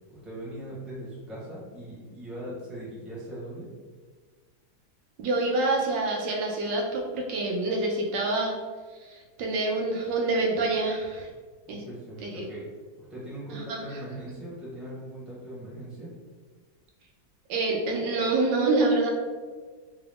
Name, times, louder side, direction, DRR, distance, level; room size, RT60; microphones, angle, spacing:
voice 1, 0.1-3.7 11.7-12.7 13.1-16.1, right 1 dB, ahead, -8 dB, 0.9 m, -40 dB
voice 2, 5.2-8.6 9.0-11.3 11.7-11.8 12.2-12.5 13.5-13.8 17.5-19.1, right 2 dB, 85° right, 0 dB, 1.3 m, -26 dB
3.9 x 2.3 x 3.4 m, 1.4 s
omnidirectional pair, 1.9 m